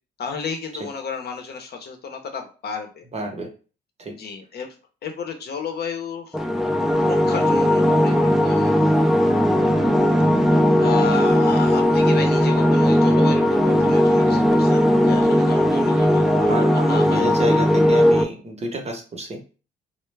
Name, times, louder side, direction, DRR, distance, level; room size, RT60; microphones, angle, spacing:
voice 1, 0.2-3.0 4.1-4.8 5.0-6.4 7.1-8.8 10.8-17.3, left 5 dB, 55° left, 5 dB, 0.7 m, -32 dB
voice 2, 3.1-3.5 4.0-4.1 16.2-19.4, right 1 dB, 35° right, 3 dB, 0.8 m, -29 dB
sound 1, 6.3-18.2, equal, ahead, 0.4 m, -18 dB
2.2 x 2.1 x 3.2 m, 0.35 s
cardioid pair, 90°, 20 cm